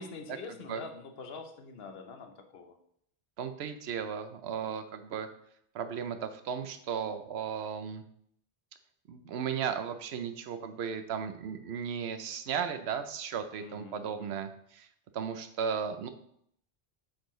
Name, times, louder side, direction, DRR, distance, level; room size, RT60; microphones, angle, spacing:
voice 1, 0.0-2.8 13.6-14.4, left 4 dB, 70° left, 6 dB, 1.0 m, -45 dB
voice 2, 3.4-5.3 5.7-8.0 9.1-14.9 15.1-16.1, right 7 dB, 90° right, 9 dB, 0.9 m, -35 dB
7.4 x 4.5 x 3.1 m, 0.70 s
omnidirectional pair, 1.0 m